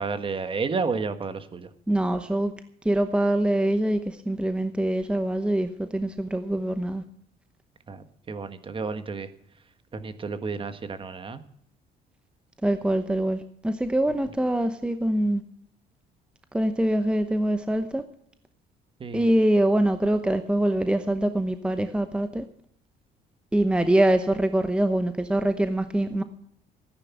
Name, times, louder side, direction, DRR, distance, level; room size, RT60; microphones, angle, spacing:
voice 1, 0.0-1.7 7.9-9.3 9.9-11.4 19.0-19.2, right 4 dB, 30° right, 1.4 m, -31 dB
voice 2, 1.9-2.5 2.8-7.0 12.6-15.4 16.5-18.0 19.1-22.4 23.5-26.2, right 1 dB, 5° right, 0.9 m, -24 dB
14.0 x 9.8 x 7.1 m
cardioid pair, 110°, 17 cm